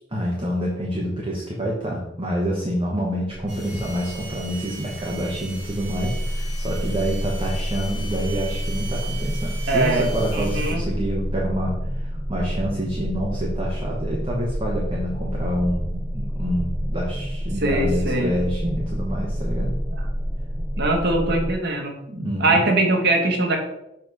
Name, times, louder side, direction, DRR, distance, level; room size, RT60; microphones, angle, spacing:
voice 1, 0.1-15.8 16.1-19.8 22.1-22.7, equal, 30° right, -4 dB, 1.2 m, -27 dB
sound 1, 3.3-21.5, equal, 10° right, 0.3 m, -29 dB
sound 2, 3.5-10.7, right 3 dB, 85° right, 2.4 m, -39 dB
voice 2, 9.7-10.9 17.6-18.3 20.8-22.0 22.4-23.6, right 2 dB, 60° right, 2 dB, 1.2 m, -21 dB
6.9 x 3.2 x 5.3 m, 0.83 s
head